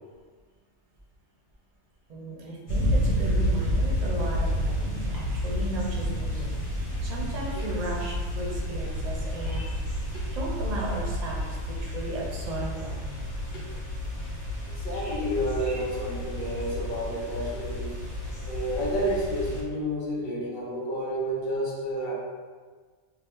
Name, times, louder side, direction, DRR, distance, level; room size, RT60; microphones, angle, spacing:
voice 1, 2.1-6.5 7.0-9.8 10.3-13.1, right 2 dB, 45° right, -2 dB, 0.6 m, -35 dB
sound 1, 2.7-19.6, equal, 90° left, 1.4 m, -30 dB
voice 2, 14.8-17.9 18.4-22.1, equal, 50° left, -5 dB, 0.8 m, -30 dB
2.7 x 2.4 x 3.5 m, 1.5 s
omnidirectional pair, 1.2 m